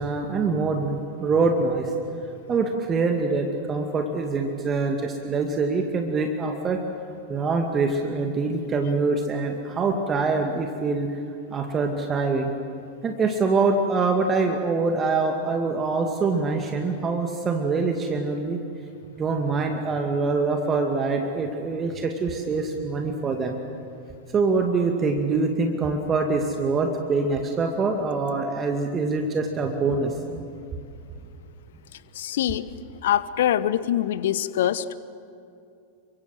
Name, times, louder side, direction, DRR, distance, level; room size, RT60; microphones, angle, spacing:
voice 1, 0.0-1.9 2.5-6.8 7.3-11.2 11.5-12.5 13.0-18.6 19.2-23.6 24.3-30.5, right 4 dB, 25° right, 4 dB, 2.3 m, -24 dB
voice 2, 32.1-32.7 33.0-34.9, left 11 dB, 55° left, 16 dB, 1.0 m, -24 dB
29.5 x 24.0 x 7.8 m, 2.5 s
figure-of-eight pair, 90°, 0 cm